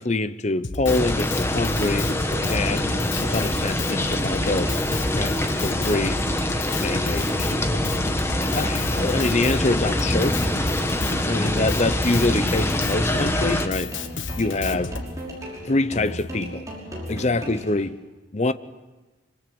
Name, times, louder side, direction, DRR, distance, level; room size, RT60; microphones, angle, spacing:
voice 1, 0.0-2.1 2.5-4.8 5.1-6.2 6.8-7.6 8.5-10.4 11.3-13.9 14.4-14.9 15.6-16.7 17.1-18.0 18.3-18.5, left 2 dB, 35° left, 0.8 m, -25 dB
Drum kit, 0.6-15.1, left 3 dB, 75° left, 1.4 m, -32 dB
sound 1, 0.9-13.7, left 1 dB, 15° left, 1.3 m, -25 dB
sound 2, 1.9-17.9, equal, 15° right, 5.9 m, -36 dB
25.0 x 24.5 x 7.8 m
head